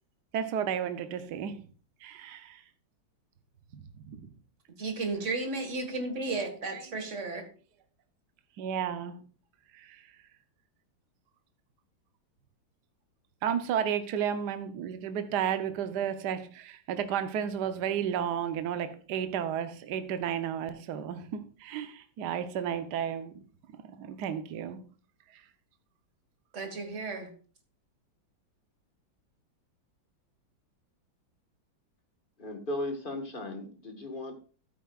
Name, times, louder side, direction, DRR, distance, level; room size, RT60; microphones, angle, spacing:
voice 1, 0.3-1.6 2.0-2.6 3.7-4.3 6.4-7.0 8.6-9.2 9.7-10.0 13.4-23.3 23.7-24.8, right 8 dB, 60° right, 1.4 m, -33 dB
voice 2, 4.8-7.4 26.5-27.3, right 3 dB, 40° right, 2.0 m, -33 dB
voice 3, 32.4-34.4, left 1 dB, 30° left, 1.6 m, -36 dB
12.5 x 9.4 x 2.4 m
omnidirectional pair, 2.2 m